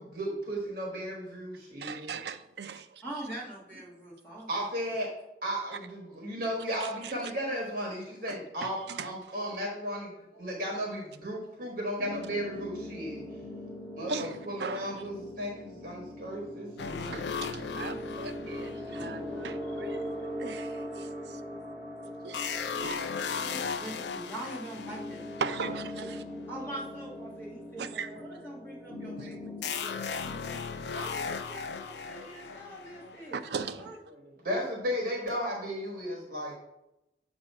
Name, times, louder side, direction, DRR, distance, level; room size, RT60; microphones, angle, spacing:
voice 1, 0.0-2.2 4.5-5.1 5.4-13.2 14.0-17.2 20.9-21.0 21.5-21.7 31.6-31.8 32.1-33.1 34.2-36.5, equal, 50° right, -1 dB, 1.1 m, -35 dB
voice 2, 1.8-3.0 6.7-7.1 8.2-9.1 14.1-15.0 17.1-20.1 20.4-21.4 22.2-23.0 25.4-26.3 27.8-28.1 29.2-29.3 29.6-29.7 33.3-33.9, right 5 dB, 70° right, 9 dB, 0.4 m, -39 dB
voice 3, 3.0-4.5 23.4-25.2 26.0-26.1 26.5-34.0, right 1 dB, 15° left, -5 dB, 1.4 m, -44 dB
sound 1, 12.0-29.6, left 1 dB, 5° right, 1.6 m, -41 dB
sound 2, 16.8-19.7 22.3-25.9 29.6-33.4, left 6 dB, 75° left, 0.4 m, -37 dB
6.9 x 2.6 x 5.4 m, 0.89 s
head